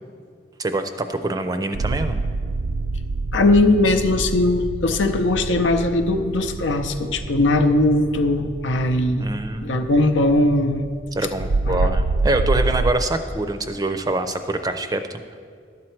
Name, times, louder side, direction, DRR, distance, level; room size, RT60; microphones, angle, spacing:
voice 1, 0.6-2.2 9.2-9.8 11.1-15.2, right 2 dB, 20° right, 8 dB, 0.4 m, -25 dB
sound 1, 1.7-12.9, right 3 dB, 80° right, 0.4 m, -27 dB
voice 2, 3.3-9.3 9.6-10.8 11.7-11.9, left 2 dB, 90° left, 7 dB, 0.7 m, -19 dB
11.5 x 7.5 x 4.5 m, 2.1 s
head